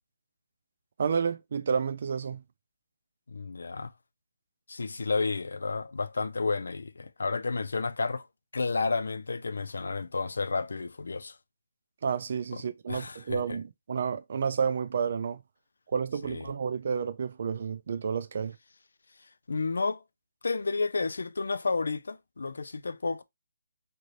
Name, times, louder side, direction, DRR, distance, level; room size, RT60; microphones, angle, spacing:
voice 1, 1.0-2.4 12.0-15.4 15.9-18.6, right 6 dB, 40° right, 0.3 m, -30 dB
voice 2, 3.3-3.9 4.7-8.2 8.5-11.4 12.9-13.4 16.3-16.4 19.5-20.0 20.4-23.2, left 4 dB, 85° left, 0.3 m, -31 dB
2.7 x 2.6 x 3.1 m
hypercardioid pair, 175°, 0 cm